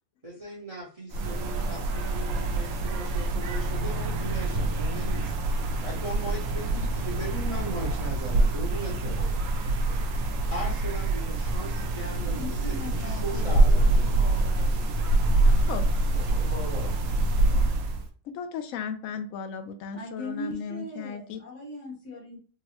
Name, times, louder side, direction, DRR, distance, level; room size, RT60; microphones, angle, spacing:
voice 1, 0.2-5.4 5.8-9.3 10.4-12.6 13.0-14.5 16.1-17.0, right 1 dB, 30° right, -4 dB, 0.8 m, -38 dB
sound 1, 1.1-18.1, right 2 dB, 80° right, 1.0 m, -25 dB
voice 2, 11.9-14.9 19.9-22.4, left 1 dB, 60° left, -3 dB, 1.6 m, -40 dB
voice 3, 15.4-16.1 18.2-21.4, left 6 dB, 80° left, 9 dB, 1.0 m, -36 dB
3.8 x 2.0 x 2.9 m, 0.39 s
omnidirectional pair, 1.4 m